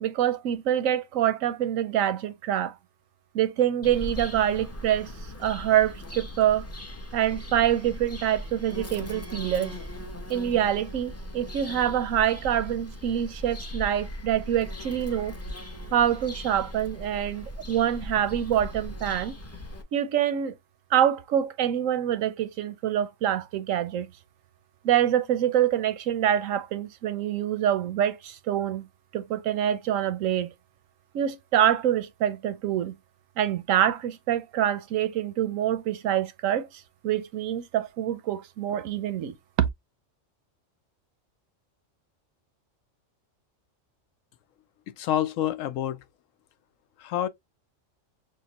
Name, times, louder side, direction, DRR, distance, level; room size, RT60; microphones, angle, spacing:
voice 1, 0.0-2.7 3.3-5.1 5.4-6.7 7.1-9.8 10.3-15.4 15.9-19.3 19.9-20.5 20.9-24.1 24.8-28.9 29.1-30.5 31.1-32.9 33.4-36.7 37.0-39.3, right 10 dB, 85° right, 1.0 m, -25 dB
Bird vocalization bird call bird song, 3.8-19.8, equal, 15° left, 0.6 m, -39 dB
voice 2, 44.9-46.0 47.0-47.3, left 11 dB, 85° left, 1.0 m, -27 dB
6.5 x 2.2 x 2.9 m
omnidirectional pair, 1.3 m